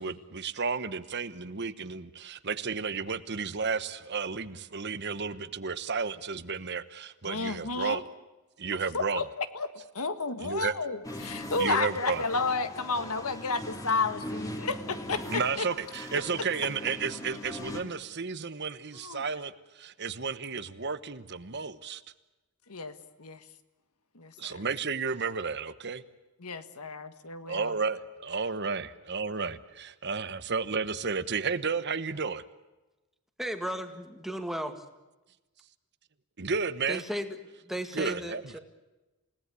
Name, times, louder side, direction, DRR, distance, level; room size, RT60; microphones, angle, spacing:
voice 1, 0.0-8.0 8.6-9.2 10.4-10.7 11.6-12.2 15.3-22.0 24.4-26.0 27.5-32.4 36.4-37.0 37.9-38.4, right 5 dB, 50° right, 13 dB, 1.1 m, -32 dB
voice 2, 7.2-8.0 8.9-9.7 9.9-15.6 16.4-16.5 19.0-19.3 22.7-23.4 24.1-24.6 26.4-27.7, left 4 dB, 80° left, 11 dB, 1.7 m, -32 dB
sound 1, 11.0-17.8, left 1 dB, 15° left, 2.8 m, -40 dB
voice 3, 33.4-34.8 36.9-37.4 37.7-38.6, equal, ahead, 6 dB, 2.0 m, -35 dB
29.0 x 18.0 x 8.4 m, 1.1 s
head